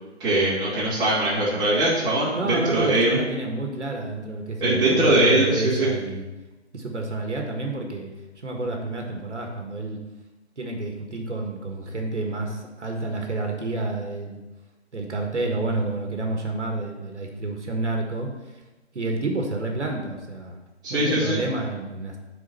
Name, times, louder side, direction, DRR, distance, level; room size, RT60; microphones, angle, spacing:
voice 1, 0.2-3.2 4.6-5.9 20.8-21.4, right 1 dB, 10° right, -9 dB, 2.6 m, -21 dB
voice 2, 2.3-6.3 6.7-8.1 8.4-10.0 10.6-14.4 14.9-18.3 19.0-20.6 20.9-22.2, right 2 dB, 80° right, 2 dB, 1.7 m, -29 dB
7.3 x 4.6 x 6.8 m, 1.1 s
figure-of-eight pair, 145°, 35 cm